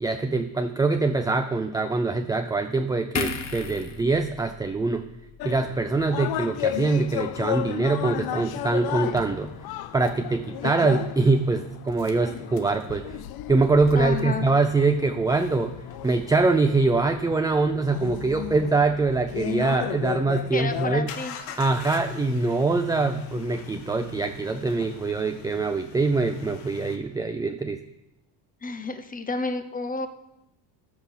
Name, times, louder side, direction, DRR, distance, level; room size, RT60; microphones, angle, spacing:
voice 1, 0.0-5.1 5.4-9.5 9.9-13.2 13.5-15.7 16.0-21.1 21.6-27.8, right 3 dB, 10° right, 6 dB, 0.3 m, -24 dB
sound 1, 3.2-6.5 6.9-7.1, left 5 dB, 35° left, 1.1 m, -36 dB
sound 2, 5.4-21.0, left 13 dB, 50° left, 0.6 m, -34 dB
sound 3, 9.1-10.8 11.9-20.0 21.1-27.0, left 8 dB, 90° left, 1.6 m, -43 dB
voice 2, 13.9-14.5 20.5-21.3 28.6-30.1, left 3 dB, 15° left, 9 dB, 0.9 m, -30 dB
14.0 x 6.0 x 7.1 m, 0.88 s
cardioid pair, 130°, 48 cm